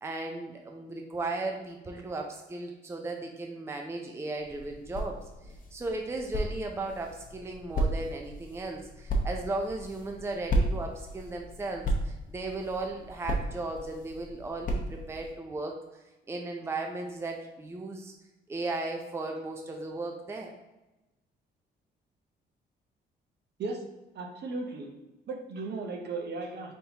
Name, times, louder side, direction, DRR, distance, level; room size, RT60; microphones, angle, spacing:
voice 1, 0.0-5.3 5.7-18.1 18.5-20.5, right 2 dB, 15° right, 2 dB, 0.5 m, -36 dB
sound 1, 4.4-15.3, right 1 dB, 45° left, 0.8 m, -34 dB
voice 2, 24.1-24.9 25.3-26.7, right 3 dB, 60° right, 2 dB, 0.8 m, -36 dB
4.0 x 3.6 x 2.9 m, 1.0 s
cardioid pair, 90°, 20 cm